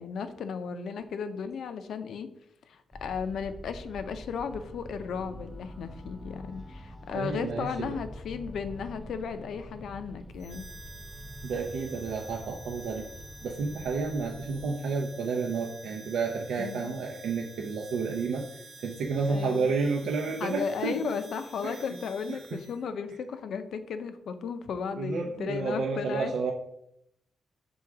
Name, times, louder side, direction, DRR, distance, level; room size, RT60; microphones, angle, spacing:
voice 1, 0.0-2.3 2.7-10.7 16.6-16.9 19.3-19.7 20.4-26.3, left 6 dB, 65° left, 10 dB, 0.5 m, -35 dB
sound 1, 2.9-14.7, equal, ahead, 0.4 m, -45 dB
voice 2, 7.1-8.0 11.4-13.1 13.4-21.1 21.6-21.8 22.3-22.6 25.0-26.5, right 4 dB, 85° right, 0 dB, 0.7 m, -31 dB
Harmonica, 10.4-22.8, right 2 dB, 40° right, 1.1 m, -50 dB
6.2 x 3.7 x 4.7 m, 0.77 s
wide cardioid pair, 170°, 0 cm